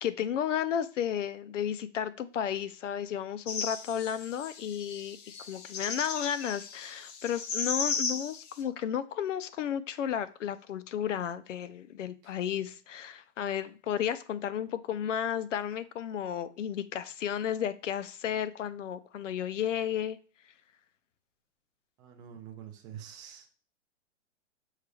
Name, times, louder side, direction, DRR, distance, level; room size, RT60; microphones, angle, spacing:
voice 1, 0.0-20.2 20.4-20.5, left 9 dB, 90° left, 14 dB, 0.6 m, -33 dB
sound 1, 3.5-8.5, left 5 dB, 35° left, 0.6 m, -36 dB
voice 2, 22.0-23.4, right 9 dB, 10° right, 3 dB, 0.3 m, -46 dB
6.4 x 3.2 x 2.3 m, 0.39 s
hypercardioid pair, 135°, 36 cm